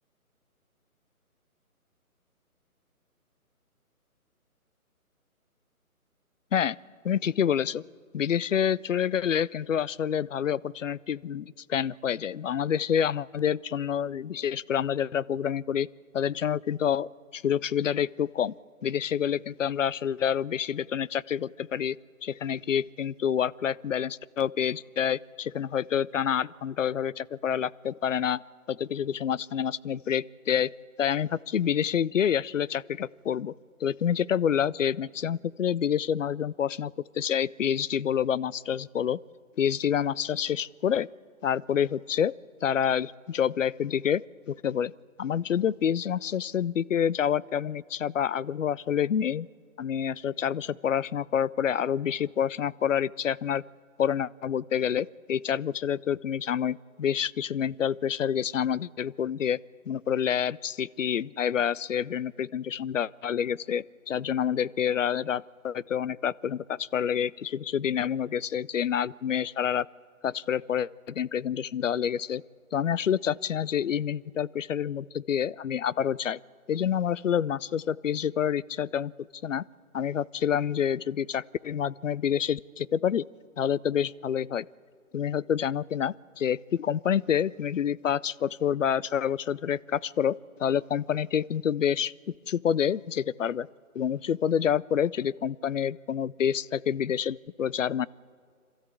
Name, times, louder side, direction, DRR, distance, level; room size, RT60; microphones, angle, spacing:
voice 1, 7.0-7.8 8.1-15.9 16.1-18.5 18.8-22.0 22.2-28.4 28.7-30.7 31.0-33.5 33.8-39.2 39.6-41.1 41.4-42.3 42.6-44.9 45.2-49.5 49.8-53.6 54.0-59.6 59.9-69.9 70.2-72.4 72.7-76.4 76.7-79.1 79.4-79.6 79.9-83.2 83.6-84.7 85.1-93.7 93.9-98.1, left 8 dB, 60° left, 20 dB, 0.5 m, -28 dB
26.5 x 13.5 x 8.2 m, 2.2 s
figure-of-eight pair, 155°, 44 cm